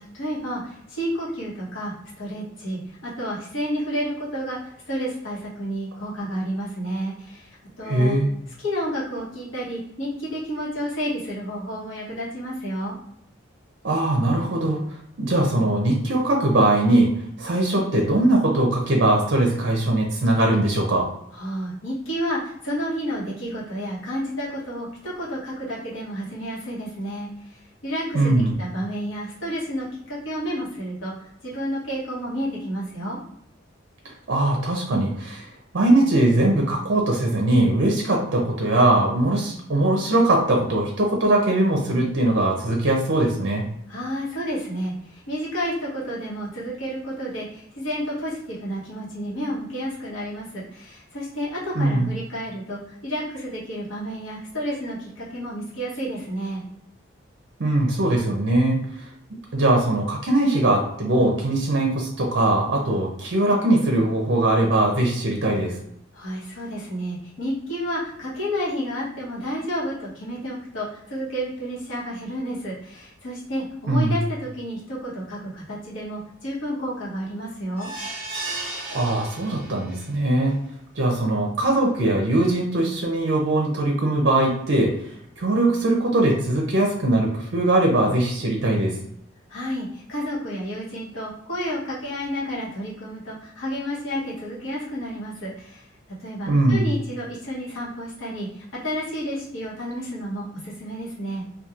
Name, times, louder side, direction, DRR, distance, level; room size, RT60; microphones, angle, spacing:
voice 1, 0.0-8.2 8.6-13.0 21.3-28.3 28.6-33.2 43.9-56.6 66.1-77.9 89.5-95.8 96.2-101.4, equal, 85° left, -6 dB, 1.0 m, -31 dB
voice 2, 7.8-8.3 13.8-17.1 17.4-21.1 28.1-28.5 34.3-43.7 51.8-52.1 57.6-59.1 59.5-65.8 73.9-74.2 78.9-80.6 81.0-84.9 85.4-89.0 96.5-96.9, right 1 dB, 60° right, 0 dB, 0.5 m, -21 dB
sound 1, 77.8-80.0 80.5-80.6 80.9-81.0, right 2 dB, 5° left, 1.0 m, -34 dB
2.9 x 2.3 x 2.4 m, 0.72 s
head